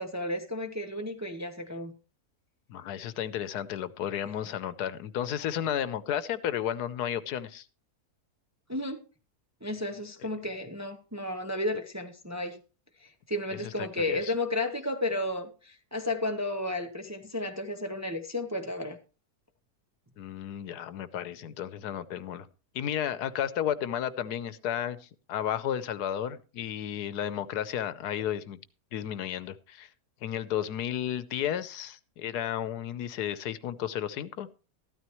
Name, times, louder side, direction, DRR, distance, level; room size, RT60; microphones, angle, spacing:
voice 1, 0.0-1.9 8.7-9.0 9.6-12.6 13.0-19.0, left 1 dB, 15° right, 0.6 m, -33 dB
voice 2, 2.7-7.6 13.6-14.3 20.2-22.5 22.7-28.6 28.9-29.9 30.2-34.5, left 10 dB, 90° left, 1.3 m, -33 dB
13.5 x 12.5 x 3.1 m
omnidirectional pair, 1.6 m